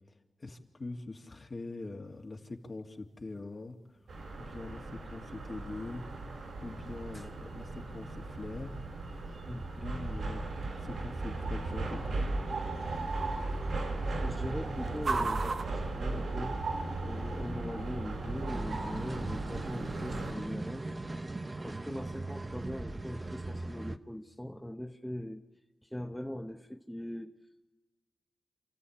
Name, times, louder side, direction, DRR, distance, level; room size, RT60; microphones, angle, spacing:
voice 1, 0.4-3.8 4.4-6.0 6.6-8.8 9.3-9.4 9.8-10.5 10.8-12.2, left 2 dB, 45° left, 2 dB, 2.3 m, -43 dB
sound 1, 2.0-16.9, right 4 dB, 65° right, 1.0 m, -44 dB
sound 2, 4.1-20.3, right 2 dB, 85° right, 4.7 m, -36 dB
voice 2, 14.2-16.6 17.0-20.9 21.6-25.4 25.9-27.3, equal, 5° left, 4 dB, 1.0 m, -41 dB
sound 3, 18.5-24.0, right 2 dB, 35° right, 0.9 m, -39 dB
28.0 x 14.0 x 8.7 m, 1.3 s
cardioid pair, 55°, 0 cm